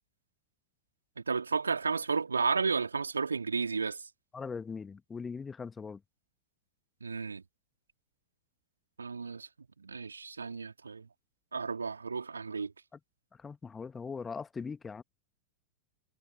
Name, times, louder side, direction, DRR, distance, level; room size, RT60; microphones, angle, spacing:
voice 1, 1.2-4.0 7.0-7.4 9.0-9.5 9.8-11.1 11.5-12.7, right 5 dB, 75° right, 3.3 m, -32 dB
voice 2, 4.3-6.0 12.9-13.0 13.4-15.0, left 5 dB, 15° left, 1.8 m, -40 dB
figure-of-eight pair, 90°, 0 cm